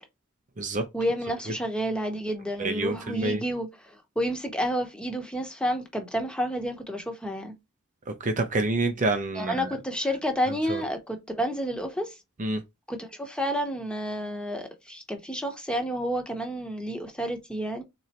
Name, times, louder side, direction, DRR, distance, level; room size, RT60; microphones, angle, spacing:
voice 1, 0.9-7.5 9.3-12.1 12.9-17.8, equal, 5° left, 1.0 m, -30 dB
voice 2, 2.6-3.4 8.1-9.7 10.7-10.8 12.4-12.6, right 2 dB, 35° right, 0.6 m, -27 dB
3.9 x 3.0 x 4.3 m
head